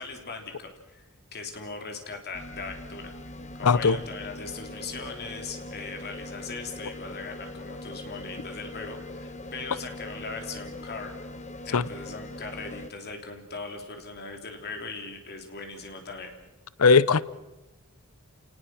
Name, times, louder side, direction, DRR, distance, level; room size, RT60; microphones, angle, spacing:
voice 1, 0.0-3.2 3.5-11.2 11.6-16.3, left 4 dB, 50° left, 3.5 m, -39 dB
sound 1, 2.3-12.9, left 1 dB, 30° left, 1.1 m, -41 dB
voice 2, 3.6-4.0 11.7-11.8 16.8-17.2, left 5 dB, 75° left, 0.7 m, -18 dB
29.5 x 19.0 x 6.2 m
head